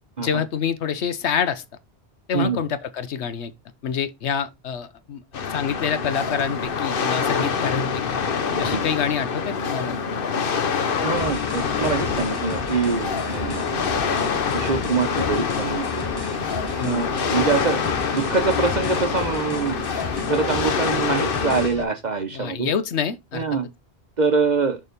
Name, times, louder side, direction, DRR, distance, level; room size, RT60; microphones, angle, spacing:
voice 1, 0.2-1.6 2.3-3.5 3.8-5.2 5.5-8.2 8.6-9.9 16.8-17.1 22.3-23.4, left 7 dB, 80° left, 1.1 m, -26 dB
voice 2, 2.3-2.6 7.4-7.5 8.5-8.8 11.0-13.8 14.5-16.0 16.8-17.8 18.1-19.8 20.3-22.7 23.3-23.7 24.2-24.8, right 5 dB, 45° right, 0.9 m, -24 dB
sound 1, 5.3-21.7, left 6 dB, 55° left, 1.0 m, -25 dB
sound 2, 11.2-21.8, left 3 dB, 20° left, 1.0 m, -35 dB
6.8 x 3.6 x 5.2 m
omnidirectional pair, 1.1 m